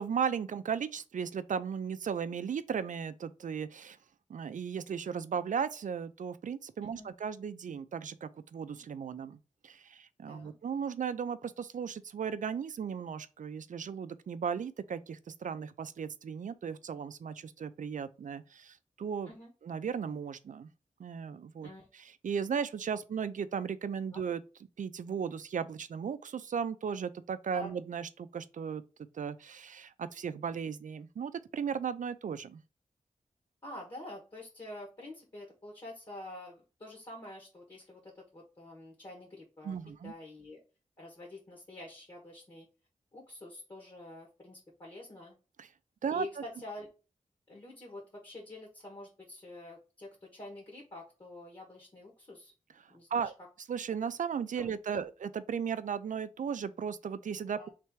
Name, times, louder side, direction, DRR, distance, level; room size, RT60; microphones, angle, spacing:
voice 1, 0.0-4.0 4.3-9.4 9.6-19.3 19.6-20.7 21.0-24.4 24.8-28.8 29.1-32.6 39.6-40.1 45.6-45.7 46.0-46.3 53.1-53.3 53.7-57.7, right 7 dB, 75° right, 0.4 m, -36 dB
voice 2, 33.6-40.6 41.0-42.7 43.1-45.4 46.1-46.9 47.5-52.5 52.9-53.3 54.5-55.1 57.5-57.7, left 1 dB, 35° left, 1.3 m, -47 dB
3.3 x 3.3 x 4.5 m
wide cardioid pair, 115°, 13 cm